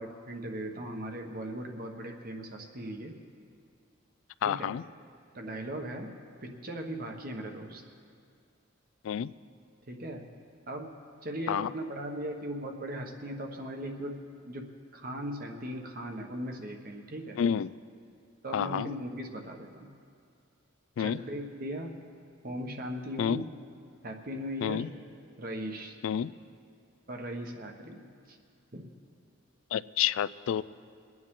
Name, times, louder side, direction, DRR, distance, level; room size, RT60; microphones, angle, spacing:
voice 1, 0.0-3.1 4.4-4.7 5.3-6.1 6.4-7.8 9.9-10.3 10.7-10.9 11.2-14.2 14.4-17.4 18.4-19.9 21.0-21.9 22.4-23.4 24.0-24.9 25.4-26.0 27.1-28.4 28.7-28.9, right 1 dB, 45° right, 3 dB, 1.2 m, -38 dB
voice 2, 4.4-4.8 9.0-9.3 11.5-11.7 17.4-17.7 18.5-18.9 21.0-21.2 23.2-23.4 24.6-24.9 26.0-26.3 29.7-30.6, left 8 dB, 85° left, 18 dB, 0.3 m, -29 dB
23.5 x 9.4 x 3.7 m, 2.3 s
head